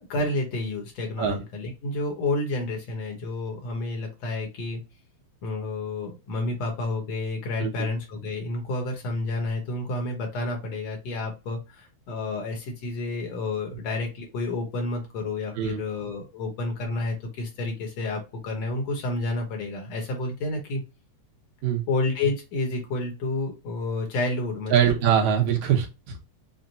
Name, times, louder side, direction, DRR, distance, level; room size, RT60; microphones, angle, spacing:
voice 1, 0.1-4.8 5.4-20.8 21.9-24.9, left 2 dB, 65° left, 2 dB, 2.2 m, -30 dB
voice 2, 24.7-26.2, right 9 dB, 80° right, 3 dB, 2.3 m, -23 dB
6.2 x 2.2 x 2.6 m, 0.27 s
omnidirectional pair, 3.3 m